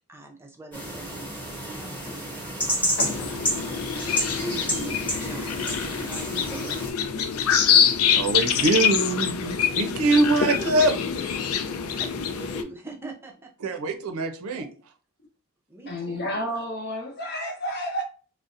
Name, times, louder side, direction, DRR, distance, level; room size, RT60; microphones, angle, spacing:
voice 1, 0.1-1.3 1.7-2.5 3.2-3.4 3.7-3.9 4.4-6.7 10.4-11.0 12.0-13.5 14.5-14.7 15.7-16.4, right 2 dB, 10° right, 0.5 m, -40 dB
sound 1, 0.7-6.9, equal, 10° left, 1.0 m, -30 dB
sound 2, 3.0-12.6, left 8 dB, 75° left, 0.4 m, -25 dB
voice 2, 8.1-10.9 13.6-14.7, right 2 dB, 75° right, 0.6 m, -23 dB
voice 3, 15.9-18.0, equal, 50° left, 0.8 m, -31 dB
4.0 x 2.1 x 2.5 m
head